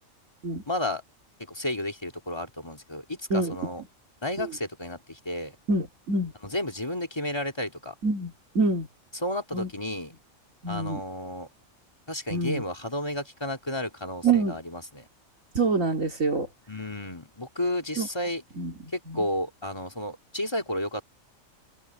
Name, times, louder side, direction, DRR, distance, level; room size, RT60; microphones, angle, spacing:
voice 1, 0.7-1.0 1.4-3.8 4.2-5.6 6.4-7.9 9.1-10.1 10.7-11.5 12.1-15.1 16.7-18.4 18.9-21.0, left 1 dB, 20° left, 2.4 m, -32 dB
voice 2, 5.7-6.3 8.0-8.9 9.5-9.7 10.6-11.0 12.3-12.6 14.2-14.6 15.5-16.5 18.0-18.1 18.6-18.7 19.1-19.2, right 3 dB, 75° right, 3.0 m, -26 dB
open air
omnidirectional pair, 1.4 m